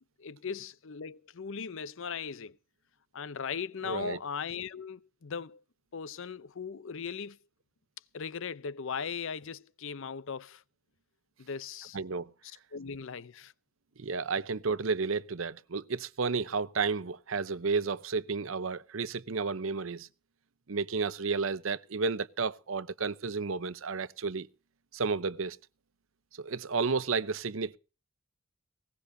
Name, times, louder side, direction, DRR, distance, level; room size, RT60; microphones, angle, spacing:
voice 1, 0.2-2.6 3.1-5.6 5.9-7.4 8.1-10.6 11.4-12.0 12.4-13.5, left 6 dB, 65° left, 0.6 m, -38 dB
voice 2, 3.8-4.2 11.9-12.3 14.0-20.1 20.7-24.5 24.9-25.6 26.4-27.8, right 4 dB, 70° right, 0.8 m, -32 dB
20.0 x 18.5 x 2.7 m
head